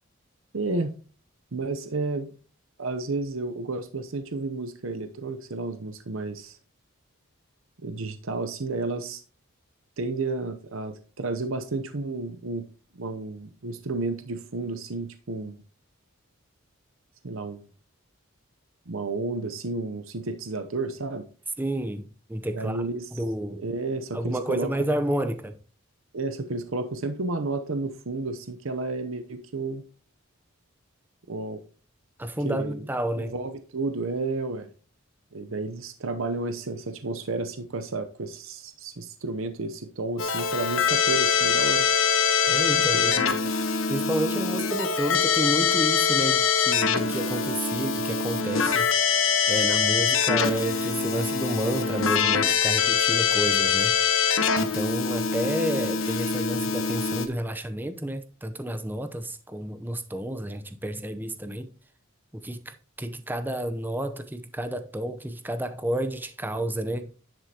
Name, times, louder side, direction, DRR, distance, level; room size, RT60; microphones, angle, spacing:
voice 1, 0.5-0.9 1.5-2.3 2.8-6.6 7.8-9.2 10.0-12.7 12.9-15.6 17.2-17.7 18.9-21.3 22.5-23.2 23.6-24.7 26.1-29.8 31.3-31.6 32.4-32.8 33.1-34.7 35.3-41.9 42.8-43.5, right 3 dB, 70° right, 0.8 m, -32 dB
voice 2, 21.6-22.8 23.1-23.6 24.1-25.5 32.2-33.3 42.5-43.4 43.9-48.9 49.5-54.0 54.6-61.7 62.3-67.1, right 1 dB, 10° right, 0.7 m, -30 dB
Keyboard (musical), 40.2-57.3, left 6 dB, 70° left, 1.1 m, -24 dB
10.5 x 7.9 x 2.9 m
head